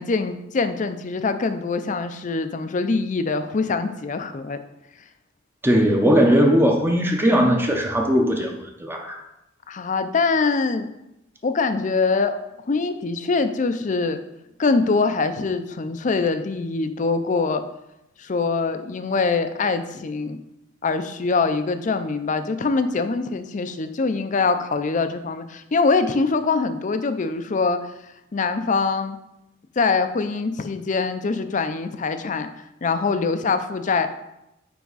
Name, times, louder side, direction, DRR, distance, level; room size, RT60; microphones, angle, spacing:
voice 1, 0.0-4.6 9.7-10.9 11.4-12.4 12.7-14.2 14.6-17.6 18.2-20.4 20.8-27.8 28.3-29.2 29.8-32.5 32.8-34.1, left 4 dB, 45° left, 9 dB, 0.5 m, -23 dB
voice 2, 5.6-8.5 8.8-9.2, equal, 10° right, 2 dB, 0.7 m, -18 dB
9.4 x 3.5 x 4.0 m, 0.88 s
head